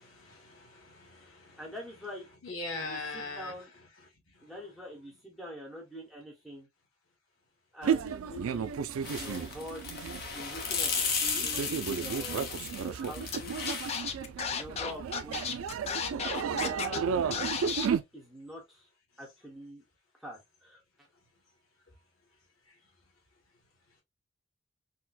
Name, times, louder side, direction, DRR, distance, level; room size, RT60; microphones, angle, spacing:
voice 1, 0.0-1.6 2.4-3.5, left 3 dB, 90° left, 1.3 m, -40 dB
voice 2, 1.6-2.3 2.7-3.7 4.4-6.7 7.7-8.8 9.1-9.9 10.3-12.5 12.7-13.8 14.5-15.4 16.4-17.1 18.1-18.9 19.2-19.8 20.2-20.8, equal, ahead, 1.0 m, -45 dB
sound 1, 7.8-18.0, right 7 dB, 90° right, 0.4 m, -33 dB
sound 2, 9.0-14.0, left 5 dB, 45° left, 0.8 m, -34 dB
Scratching (performance technique), 13.3-13.4 13.7-17.0 17.3-17.9, left 6 dB, 30° left, 0.3 m, -33 dB
4.2 x 2.1 x 2.2 m
head